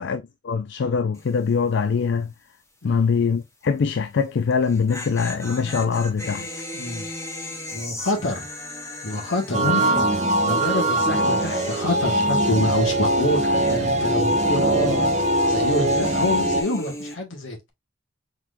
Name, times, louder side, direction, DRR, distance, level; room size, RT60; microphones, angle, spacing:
voice 1, 0.0-2.3 2.8-6.5 9.6-9.8, left 5 dB, 65° left, 0.4 m, -23 dB
sound 1, 1.1-1.5 1.8-1.9 4.5-12.9 13.1-17.2, left 1 dB, 15° left, 1.0 m, -35 dB
voice 2, 6.7-7.1 7.7-8.5 9.0-10.1 10.4-17.7, left 1 dB, 85° left, 1.8 m, -27 dB
sound 2, 9.5-16.6, right 1 dB, 40° right, 0.8 m, -22 dB
4.5 x 4.0 x 2.6 m
head